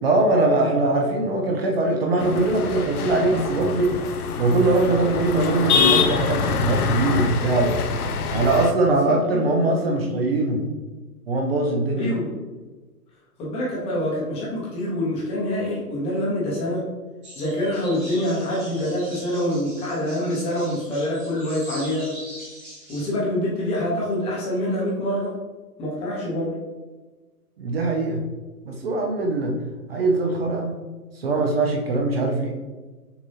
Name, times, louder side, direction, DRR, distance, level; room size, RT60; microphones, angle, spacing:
voice 1, 0.0-3.9 4.4-7.8 8.3-10.6 11.3-12.1 27.6-28.2 28.7-29.5 29.9-30.8 31.1-32.5, right 2 dB, 40° right, 1 dB, 0.6 m, -21 dB
sound 1, 2.2-8.7, left 6 dB, 70° left, 0.6 m, -25 dB
voice 2, 8.9-10.1 12.0-12.3 13.4-16.9 17.3-22.2 22.9-25.3 25.8-26.6, left 1 dB, 15° left, -5 dB, 0.8 m, -26 dB
sound 2, 17.2-23.1, right 1 dB, 15° right, 1.0 m, -41 dB
6.6 x 2.6 x 2.8 m, 1.3 s
figure-of-eight pair, 130°, 47 cm